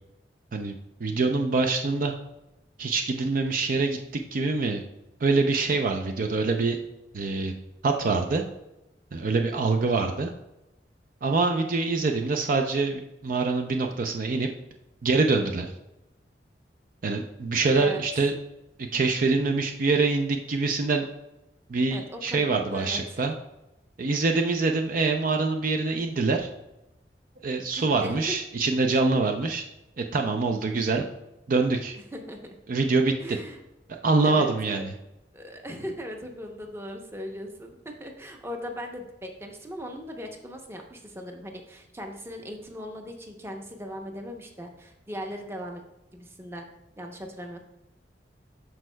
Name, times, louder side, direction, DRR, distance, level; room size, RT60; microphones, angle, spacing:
voice 1, 1.0-2.1 2.8-4.0 4.3-4.8 5.2-6.8 7.1-7.5 7.8-8.4 9.1-10.3 11.2-14.5 15.0-15.7 17.0-18.3 18.9-21.0 21.7-23.3 24.0-26.5 27.4-29.7 30.0-31.0 31.5-31.9 32.7-33.4 34.0-34.9, right 3 dB, 50° right, 3 dB, 0.5 m, -25 dB
voice 2, 21.9-23.2 28.0-28.4 32.1-32.6 33.2-33.6 34.2-34.9 35.3-45.8 46.1-46.7 47.0-47.6, equal, 15° right, 3 dB, 0.7 m, -39 dB
12.5 x 4.5 x 2.2 m, 0.93 s
head